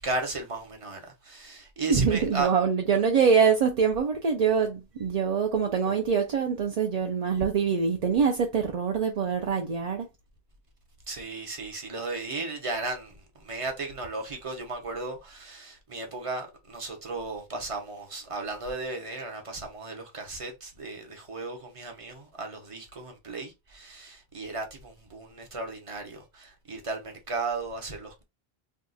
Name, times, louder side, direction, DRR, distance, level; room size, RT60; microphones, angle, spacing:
voice 1, 0.0-2.5 11.1-28.2, right 3 dB, 35° right, 0.9 m, -35 dB
voice 2, 1.9-10.1, right 6 dB, 50° right, 0.5 m, -24 dB
2.8 x 2.3 x 3.9 m
omnidirectional pair, 1.0 m